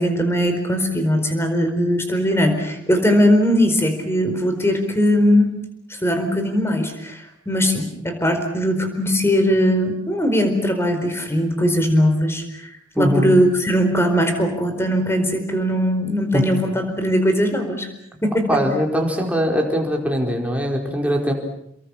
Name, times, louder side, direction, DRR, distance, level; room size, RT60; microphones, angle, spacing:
voice 1, 0.0-5.5 6.0-17.9 18.2-18.6, equal, 15° left, 6 dB, 4.6 m, -20 dB
voice 2, 18.5-21.3, equal, 5° right, 1 dB, 4.5 m, -21 dB
29.5 x 22.5 x 7.3 m, 0.76 s
head